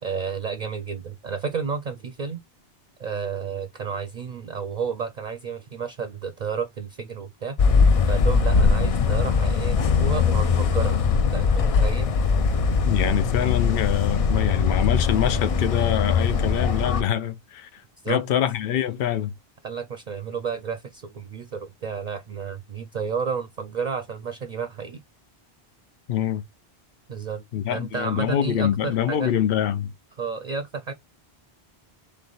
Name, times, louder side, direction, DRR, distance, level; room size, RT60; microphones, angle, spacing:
voice 1, 0.0-2.4 3.0-7.6 8.0-11.1 11.3-12.2 18.0-18.2 19.6-25.0 27.1-27.4 27.7-29.4 30.2-30.9, right 6 dB, 50° right, 0.6 m, -31 dB
sound 1, 7.6-17.0, left 5 dB, 50° left, 0.5 m, -21 dB
voice 2, 12.8-17.8 18.1-19.3 26.1-26.4 27.5-29.9, left 10 dB, 70° left, 0.8 m, -25 dB
3.4 x 3.2 x 3.8 m
omnidirectional pair, 1.0 m